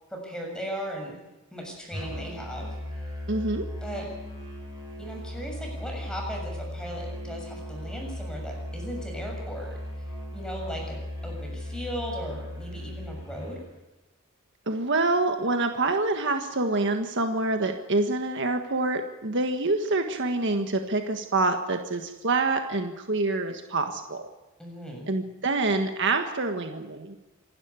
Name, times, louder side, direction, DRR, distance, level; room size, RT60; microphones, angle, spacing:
voice 1, 0.1-1.2 1.5-2.7 3.8-4.1 5.0-9.7 10.3-13.6 24.6-25.1, equal, 5° left, 0 dB, 7.1 m, -37 dB
Musical instrument, 1.9-13.6, left 1 dB, 15° right, 7.4 m, -37 dB
voice 2, 3.3-3.7 14.7-24.2 25.1-27.1, right 2 dB, 60° right, 5 dB, 1.7 m, -26 dB
26.5 x 12.0 x 9.8 m, 1.0 s
head